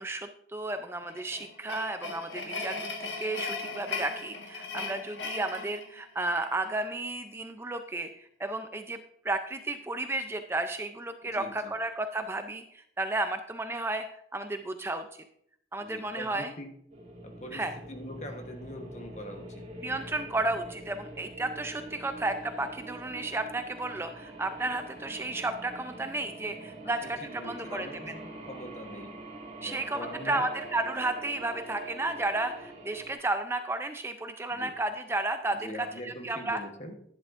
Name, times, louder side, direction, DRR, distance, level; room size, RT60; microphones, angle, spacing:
voice 1, 0.0-9.0 9.2-14.1 14.3-15.2 15.7-16.5 17.5-17.7 19.8-28.1 29.6-36.6, right 2 dB, 15° right, 0.4 m, -33 dB
sound 1, 1.0-6.5, left 4 dB, 90° left, 1.4 m, -38 dB
voice 2, 11.2-11.8 15.8-16.8 17.2-19.7 26.8-29.2 29.6-30.5 34.5-34.8 35.5-37.0, left 1 dB, 40° left, 1.1 m, -43 dB
sound 2, 16.9-33.1, right 2 dB, 40° right, 2.3 m, -44 dB
11.0 x 10.5 x 2.5 m
head